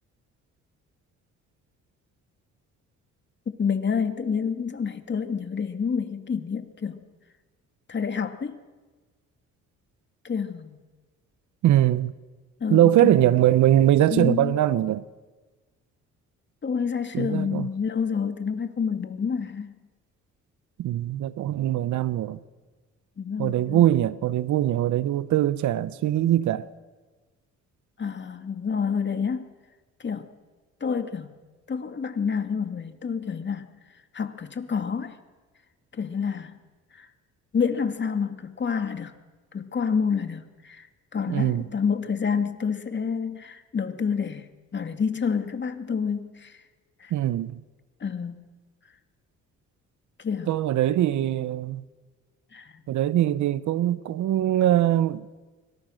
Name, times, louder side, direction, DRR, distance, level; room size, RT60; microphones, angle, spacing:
voice 1, 3.5-7.0 7.9-8.6 10.2-10.8 12.6-13.3 14.1-14.6 16.6-19.7 23.2-23.9 28.0-29.5 30.0-30.3 30.8-31.3 31.7-33.7 34.1-35.2 35.9-36.6 36.9-37.1 37.5-39.2 39.5-40.9 41.1-46.6 47.0-47.1 48.0-48.4 50.2-50.5 52.5-52.8, left 6 dB, 40° left, 2.3 m, -28 dB
voice 2, 11.6-12.1 12.7-15.0 17.1-17.7 20.8-22.4 23.4-26.7 41.3-41.6 47.1-47.6 50.5-51.8 52.9-55.3, right 12 dB, 75° right, 1.0 m, -22 dB
26.5 x 24.5 x 6.6 m
cardioid pair, 85°, 30 cm